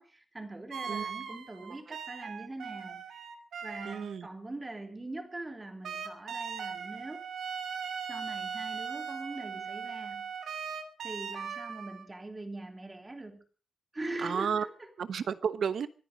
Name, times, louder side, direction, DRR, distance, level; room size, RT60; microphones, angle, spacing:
voice 1, 0.0-3.2 3.6-7.2 8.1-10.3 11.0-13.4 13.9-14.9, right 2 dB, 20° right, 3.1 m, -42 dB
sound 1, 0.7-4.1 5.8-12.1, right 6 dB, 85° right, 2.6 m, -39 dB
voice 2, 3.8-4.3 14.2-14.7 15.0-15.9, right 7 dB, 70° right, 1.1 m, -32 dB
24.5 x 10.0 x 5.3 m
wide cardioid pair, 135°, 0 cm